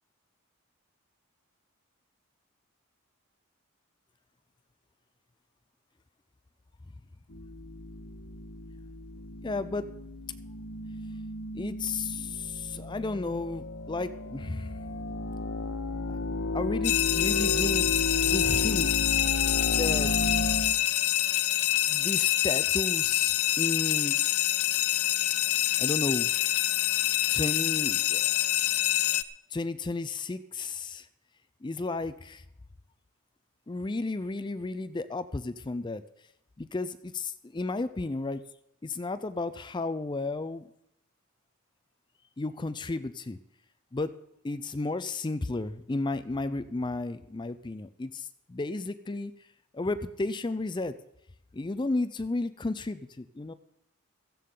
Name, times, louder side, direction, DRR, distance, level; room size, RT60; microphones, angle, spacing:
sound 1, 7.3-20.7, left 2 dB, 55° left, 1.0 m, -33 dB
voice 1, 9.4-9.9 11.5-14.8 16.1-16.2 16.5-18.0 18.2-18.9 19.7-20.1 21.9-24.2 25.8-26.3 26.8-26.9 27.3-28.4 29.5-31.1 31.6-32.4 33.7-36.0 36.6-38.4 38.8-40.7 42.4-43.4 43.9-44.1 44.4-49.3 49.7-51.0 51.5-53.5, left 3 dB, 20° left, 13 dB, 0.4 m, -33 dB
sound 2, 16.8-29.2, left 14 dB, 80° left, 0.5 m, -26 dB
16.0 x 15.0 x 3.8 m, 0.81 s
head